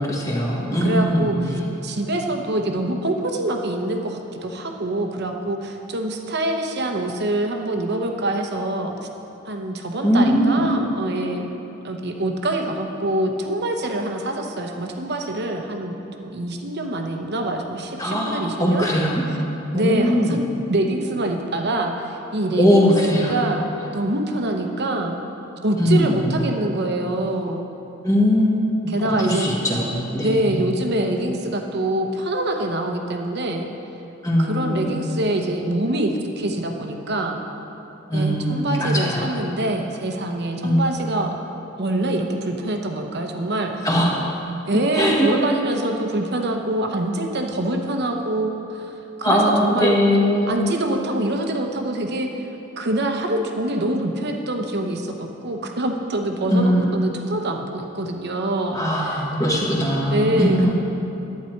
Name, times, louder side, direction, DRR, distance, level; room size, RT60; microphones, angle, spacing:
voice 1, 0.0-1.3 10.0-10.6 18.0-19.2 19.7-20.3 22.6-23.3 25.8-26.2 28.0-28.9 29.2-30.4 34.2-34.9 38.1-39.3 40.6-40.8 43.8-44.1 44.9-45.3 49.2-50.6 56.4-56.9 58.7-60.7, equal, 15° left, -4 dB, 1.6 m, -20 dB
voice 2, 0.8-1.4 1.8-8.9 9.5-11.5 11.8-18.9 19.7-20.4 20.7-21.9 22.3-25.1 25.6-27.6 28.9-29.5 30.2-33.7 34.4-37.4 38.1-41.4 41.8-43.9 44.7-48.9 49.2-50.0 50.5-52.3 52.8-58.8 59.1-59.2 60.1-60.7, right 1 dB, 55° right, 3 dB, 0.9 m, -25 dB
11.5 x 9.4 x 4.6 m, 2.9 s
head